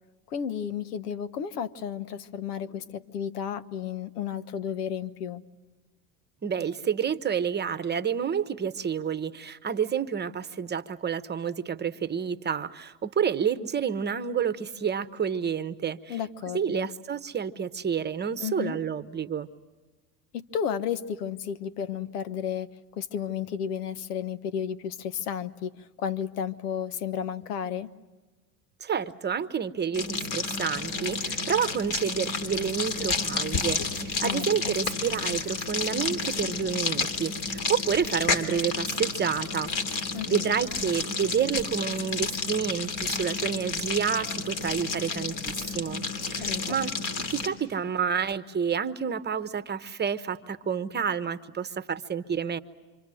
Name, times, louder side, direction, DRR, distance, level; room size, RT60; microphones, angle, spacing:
voice 1, 0.3-5.4 16.1-16.9 18.4-18.8 20.3-27.9 34.2-34.7 40.1-40.5 46.4-46.7, left 8 dB, 90° left, 15 dB, 1.2 m, -33 dB
voice 2, 6.4-16.2 16.5-19.5 28.8-46.9 47.3-52.6, right 7 dB, 20° right, 12 dB, 1.0 m, -29 dB
sound 1, 29.9-47.5, left 4 dB, 45° left, 3.2 m, -31 dB
27.0 x 25.5 x 7.7 m, 1.2 s
supercardioid pair, 100°, 45 cm